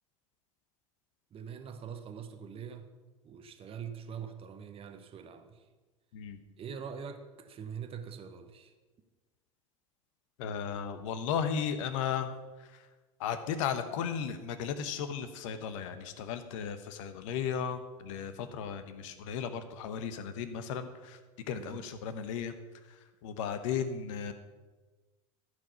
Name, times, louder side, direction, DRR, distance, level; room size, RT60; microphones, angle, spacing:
voice 1, 1.3-2.9 3.2-5.7 6.6-8.7 21.5-21.9, right 7 dB, 30° right, 8 dB, 1.0 m, -44 dB
voice 2, 10.4-12.3 12.6-12.8 13.2-21.2 21.5-22.5 23.2-24.3, left 7 dB, 65° left, 10 dB, 1.0 m, -35 dB
14.0 x 4.7 x 5.6 m, 1.3 s
hypercardioid pair, 80°, 18 cm